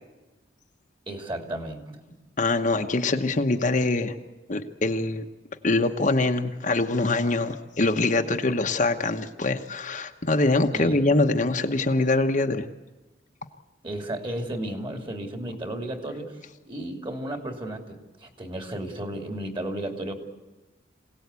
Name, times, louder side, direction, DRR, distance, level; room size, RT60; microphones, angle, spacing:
voice 1, 1.1-2.0 10.7-11.0 13.8-16.4 16.7-20.1, right 1 dB, 30° right, 4 dB, 2.8 m, -33 dB
voice 2, 2.4-4.1 4.5-5.2 5.6-12.7, left 2 dB, 45° left, 5 dB, 1.1 m, -24 dB
26.5 x 18.0 x 8.3 m, 1.2 s
head